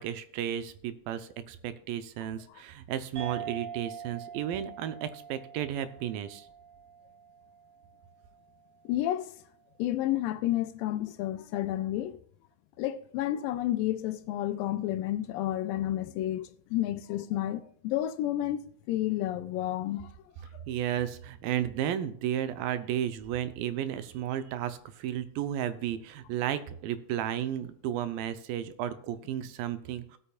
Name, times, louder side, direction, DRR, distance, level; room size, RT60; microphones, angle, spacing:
voice 1, 0.0-6.5 20.7-30.2, right 10 dB, 80° right, 2.4 m, -33 dB
sound 1, 3.2-8.1, right 7 dB, 60° right, 2.9 m, -44 dB
voice 2, 8.9-9.3 9.8-12.2 12.8-20.1 20.5-20.6, left 13 dB, 80° left, 2.2 m, -31 dB
17.0 x 8.6 x 2.4 m
omnidirectional pair, 4.2 m